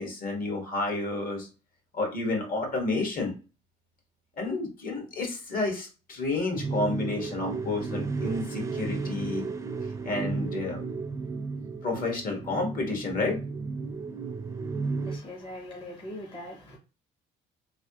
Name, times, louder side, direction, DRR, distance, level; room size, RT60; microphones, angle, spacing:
voice 1, 0.0-1.5 1.9-3.3 4.4-9.4 10.0-10.8 11.8-13.4, left 3 dB, 55° left, 1.4 m, -30 dB
sound 1, 6.5-15.2, right 4 dB, 15° right, 0.5 m, -33 dB
voice 2, 15.1-16.8, left 1 dB, 30° left, 0.8 m, -41 dB
3.2 x 2.6 x 2.8 m
cardioid pair, 110°, 17 cm